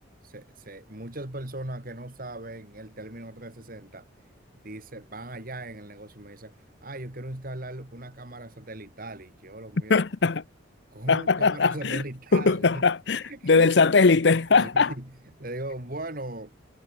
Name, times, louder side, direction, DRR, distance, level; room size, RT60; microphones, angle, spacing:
voice 1, 0.2-4.1 4.6-6.5 6.8-10.0 10.9-12.8 13.2-13.7 14.5-15.1 15.4-16.5, right 1 dB, 45° right, 3.1 m, -38 dB
voice 2, 9.9-10.4 11.1-12.0 12.3-14.9, left 4 dB, 60° left, 0.7 m, -21 dB
head